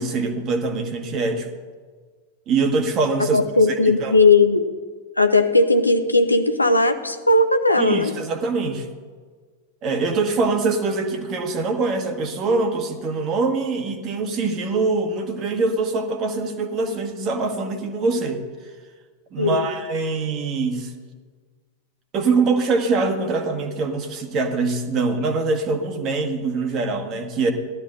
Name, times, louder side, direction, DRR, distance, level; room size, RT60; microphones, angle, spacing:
voice 1, 0.0-1.5 2.5-3.4 4.0-4.2 7.8-8.9 9.8-18.4 19.3-20.9 22.1-27.5, right 3 dB, 35° right, 5 dB, 1.4 m, -23 dB
voice 2, 3.3-4.6 5.2-8.1 19.4-19.7, left 2 dB, 85° left, 9 dB, 0.7 m, -17 dB
18.0 x 12.5 x 2.5 m, 1.5 s
figure-of-eight pair, 90°, 0 cm